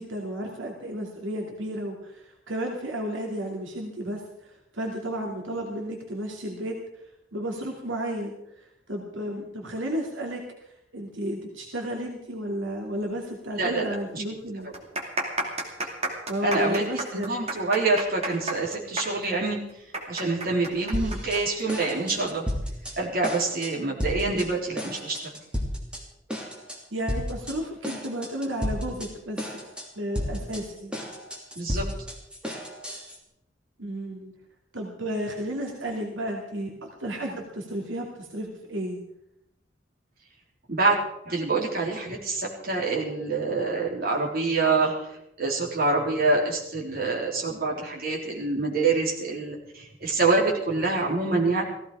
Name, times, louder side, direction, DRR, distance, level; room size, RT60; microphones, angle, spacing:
voice 1, 0.0-4.2 4.7-6.8 7.3-8.3 8.9-10.4 10.9-14.7 16.3-17.2 26.9-29.4 30.0-30.9 33.8-34.3 34.7-39.0, right 1 dB, 80° right, 1 dB, 2.5 m, -32 dB
sound 1, 13.5-13.6 13.9-14.0 14.6-21.9 22.2-22.3 23.0-23.3, right 2 dB, 35° right, 2.7 m, -31 dB
voice 2, 13.6-14.2 14.6-14.7 16.4-19.6 20.1-22.5 23.0-25.3 31.6-31.9 40.7-41.0 41.3-51.6, right 3 dB, 50° right, -1 dB, 3.7 m, -26 dB
sound 2, 20.9-21.4 21.7-22.9 23.2-23.7 24.0-24.5 24.8-26.0 26.3-26.8 27.1-27.5 27.8-29.1 29.4-29.8 30.1-33.2, equal, 5° right, 3.0 m, -32 dB
16.0 x 15.5 x 4.9 m, 0.80 s
head